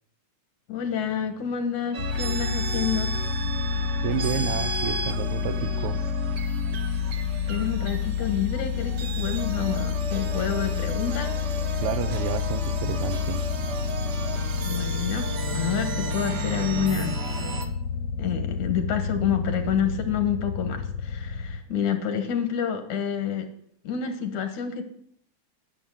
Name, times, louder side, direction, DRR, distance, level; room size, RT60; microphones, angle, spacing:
voice 1, 0.7-3.1 3.8-3.9 7.5-11.4 11.7-11.8 14.6-17.2 18.2-23.5 23.8-24.8, left 8 dB, 75° left, 7 dB, 2.8 m, -28 dB
sound 1, 1.9-17.7, right 4 dB, 55° right, 1.2 m, -35 dB
sound 2, 2.0-21.6, left 6 dB, 60° left, 1.6 m, -29 dB
voice 2, 4.0-6.0 11.8-13.4, right 11 dB, 75° right, 13 dB, 1.3 m, -30 dB
11.0 x 7.2 x 9.0 m, 0.69 s
omnidirectional pair, 3.4 m